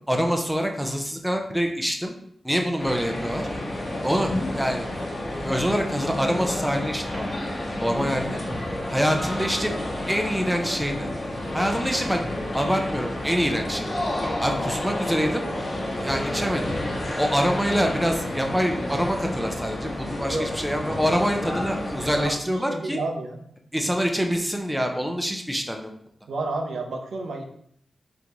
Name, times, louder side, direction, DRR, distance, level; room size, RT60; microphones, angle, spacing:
voice 1, 0.1-2.1 2.4-3.5 4.0-4.9 5.4-7.3 7.8-8.4 8.9-9.7 10.1-11.1 11.5-12.2 12.5-13.9 14.4-15.5 16.0-16.7 17.2-23.0 23.7-25.9, equal, 5° right, 3 dB, 0.5 m, -25 dB
sound 1, 2.8-22.3, left 1 dB, 40° left, 1.0 m, -30 dB
voice 2, 22.7-23.4 26.3-27.4, right 3 dB, 85° right, 2 dB, 0.6 m, -30 dB
3.9 x 3.7 x 2.9 m, 0.67 s
wide cardioid pair, 115°, 0 cm